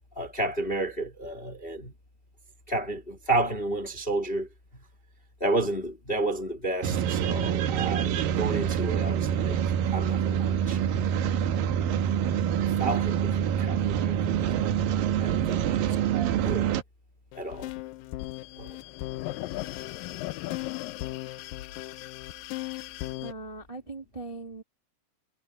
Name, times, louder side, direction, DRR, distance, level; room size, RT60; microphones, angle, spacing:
voice 1, 0.1-1.9 2.7-4.5 5.4-11.3 12.4-14.7 15.2-16.0 16.4-16.7 17.3-17.7 18.6-18.8, right 2 dB, 20° left, 1.7 m, -32 dB
sound 1, 6.8-16.8, right 9 dB, 70° right, 2.9 m, -26 dB
sound 2, 17.3-23.3, left 18 dB, 80° left, 2.2 m, -36 dB
voice 2, 23.2-24.6, right 3 dB, 15° right, 1.4 m, -40 dB
omnidirectional pair, 4.3 m